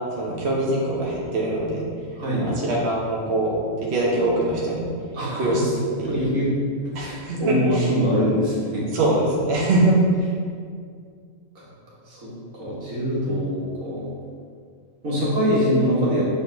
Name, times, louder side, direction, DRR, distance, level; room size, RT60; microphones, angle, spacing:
voice 1, 0.1-1.8 2.4-3.5 3.8-4.9 5.3-6.2 6.9-7.9 8.9-10.3, right 1 dB, 55° right, -4 dB, 1.1 m, -23 dB
voice 2, 2.2-2.6 5.1-5.7 6.1-6.5 7.0-8.9 11.6-11.7 12.1-14.1 15.0-16.3, equal, 80° right, -7 dB, 2.0 m, -24 dB
6.9 x 4.1 x 3.9 m, 2.1 s
omnidirectional pair, 1.4 m